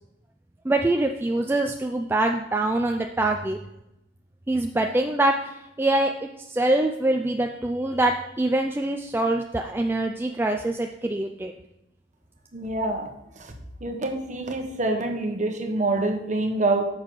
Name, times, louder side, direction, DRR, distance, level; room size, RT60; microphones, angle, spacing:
voice 1, 0.6-3.6 4.5-5.5 5.8-6.1 6.5-11.5, right 2 dB, 10° right, 3 dB, 0.4 m, -24 dB
voice 2, 12.5-13.1 13.4-13.5 13.8-16.8, right 2 dB, 40° right, 4 dB, 1.2 m, -26 dB
9.6 x 6.5 x 3.8 m, 0.86 s
head